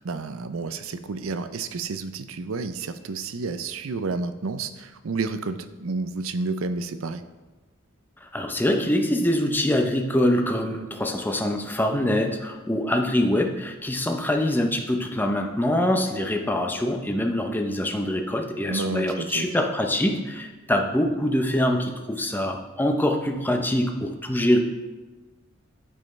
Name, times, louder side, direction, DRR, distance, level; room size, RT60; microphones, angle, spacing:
voice 1, 0.0-7.2 18.7-19.6, right 3 dB, 75° right, 11 dB, 0.5 m, -30 dB
voice 2, 8.2-24.6, left 1 dB, 10° left, 3 dB, 0.7 m, -24 dB
13.0 x 5.5 x 3.2 m, 1.2 s
head